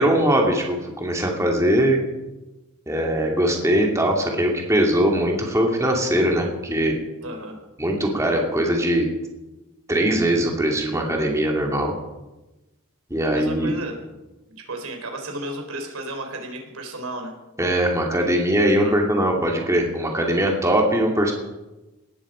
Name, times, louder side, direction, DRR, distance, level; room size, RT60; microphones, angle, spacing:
voice 1, 0.0-2.0 2.9-6.9 7.8-9.0 9.9-11.9 13.1-13.7 17.6-21.3, right 1 dB, 15° right, 0 dB, 2.4 m, -21 dB
voice 2, 7.2-7.6 13.2-14.0 14.6-17.3 18.6-19.0, right 1 dB, 90° right, 4 dB, 4.0 m, -33 dB
18.5 x 14.0 x 5.0 m, 1.0 s
head